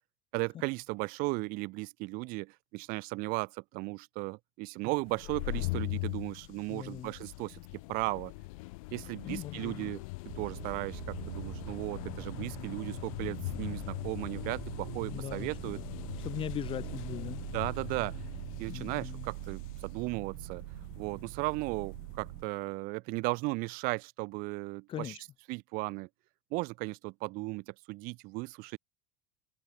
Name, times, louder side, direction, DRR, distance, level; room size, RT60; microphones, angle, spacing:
voice 1, 0.3-7.6 7.9-8.3 8.9-10.0 10.4-15.8 17.5-18.2 18.6-20.6 21.0-25.2 25.5-26.1 26.5-28.8, right 25 dB, 55° right, 0.6 m, -36 dB
sound 1, 5.0-22.4, left 25 dB, 90° left, 0.4 m, -42 dB
voice 2, 6.7-7.1 9.2-9.9 15.1-15.8 16.2-17.4 18.7-19.3 24.9-25.2, left 11 dB, 30° left, 0.7 m, -40 dB
sound 2, 10.3-22.4, right 25 dB, 85° right, 1.4 m, -43 dB
open air
cardioid pair, 140°, 17 cm